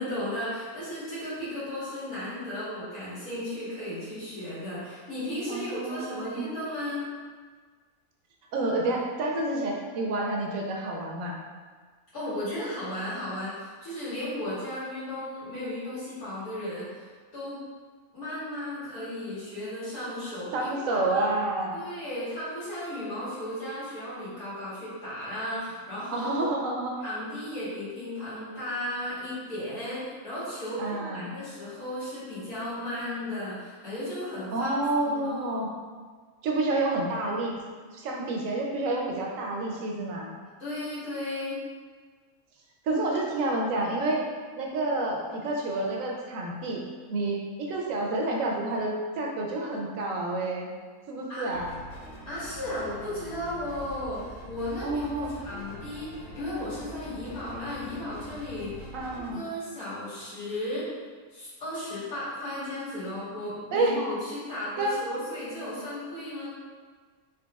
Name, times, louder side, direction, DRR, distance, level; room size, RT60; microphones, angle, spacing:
voice 1, 0.0-7.0 12.1-16.9 17.3-17.6 18.1-21.0 21.7-26.5 27.0-35.6 40.6-41.6 51.3-51.5 52.3-58.9 59.3-60.9 61.3-66.5, left 1 dB, 85° left, -10 dB, 1.9 m, -35 dB
voice 2, 5.5-6.5 8.5-11.4 20.5-21.8 26.1-26.9 30.8-31.5 34.5-35.7 36.4-37.5 37.9-40.3 42.8-44.2 44.6-46.8 47.1-50.7 51.1-51.7 54.8-55.3 58.9-59.4 63.7-63.9 64.8-64.9, right 2 dB, 70° right, -1 dB, 0.9 m, -29 dB
sound 1, 51.5-59.3, equal, 70° left, 1.1 m, -44 dB
3.9 x 3.2 x 2.3 m, 1.5 s
omnidirectional pair, 1.5 m